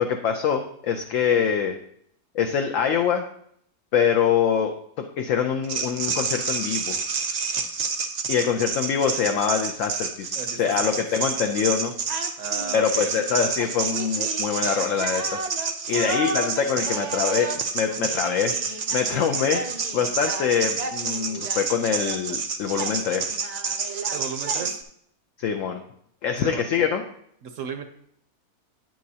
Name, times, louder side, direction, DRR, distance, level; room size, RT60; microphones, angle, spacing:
voice 1, 0.0-1.8 2.3-3.2 3.9-7.0 8.3-11.9 12.7-15.4 15.9-17.5 17.7-18.5 18.9-19.6 19.9-23.4 25.4-25.8 26.2-27.0, left 7 dB, 65° left, 5 dB, 0.9 m, -24 dB
sound 1, 5.6-24.8, right 5 dB, 85° right, 0.3 m, -29 dB
voice 2, 10.4-11.1 12.4-13.1 15.9-16.1 24.1-24.8 26.4-26.9 27.4-27.8, right 6 dB, 65° right, 7 dB, 0.9 m, -35 dB
9.1 x 7.6 x 2.8 m, 0.68 s
omnidirectional pair, 1.6 m